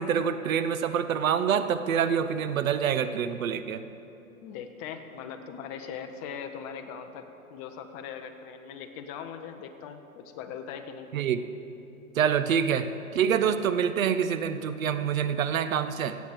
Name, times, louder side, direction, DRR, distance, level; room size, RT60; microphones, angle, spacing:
voice 1, 0.0-3.8 11.1-11.4 12.2-16.2, right 7 dB, 70° right, 11 dB, 0.8 m, -26 dB
voice 2, 4.4-11.1, left 7 dB, 25° left, 6 dB, 0.7 m, -40 dB
16.0 x 8.2 x 4.8 m, 2.9 s
hypercardioid pair, 135°, 42 cm